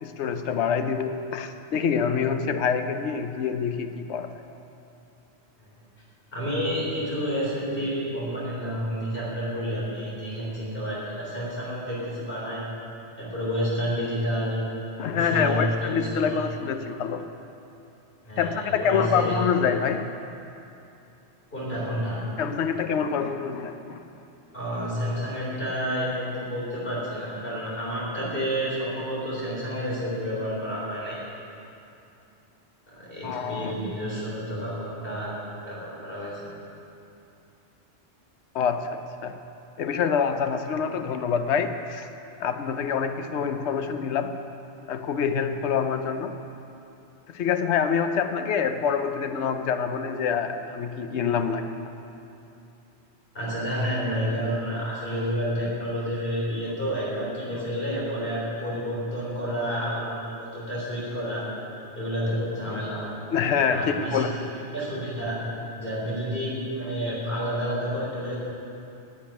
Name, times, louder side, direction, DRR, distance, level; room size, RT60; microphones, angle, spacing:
voice 1, 0.0-4.3 15.0-17.3 18.4-20.1 22.4-24.0 33.2-33.7 38.5-39.4 39.8-42.0 42.4-44.3 44.9-46.4 47.3-51.9 62.7-62.8 63.3-64.4, left 6 dB, 75° left, 8 dB, 1.0 m, -26 dB
voice 2, 6.3-12.6 13.2-14.6 15.1-16.4 18.2-19.4 21.5-22.2 24.5-31.2 32.9-35.3 35.6-36.5 53.3-61.4 62.0-63.1 63.7-65.4 65.8-68.4, equal, 50° left, -6 dB, 4.1 m, -30 dB
11.0 x 9.1 x 9.0 m, 2.8 s
omnidirectional pair, 1.2 m